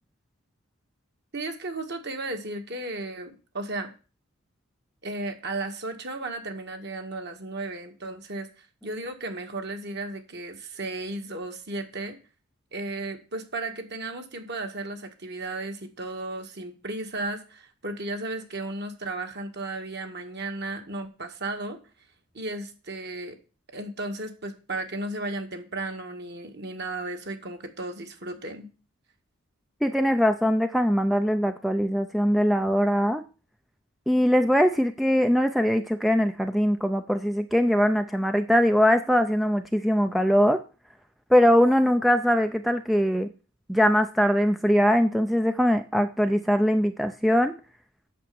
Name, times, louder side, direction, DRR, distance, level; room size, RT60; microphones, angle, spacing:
voice 1, 1.3-3.9 5.0-12.2 12.7-21.8 22.3-23.4 23.7-28.7, right 2 dB, 50° right, 4 dB, 1.8 m, -34 dB
voice 2, 29.8-33.2 34.1-40.6 41.3-43.3 43.7-47.5, equal, ahead, 7 dB, 0.5 m, -22 dB
8.6 x 7.1 x 7.0 m, 0.34 s
head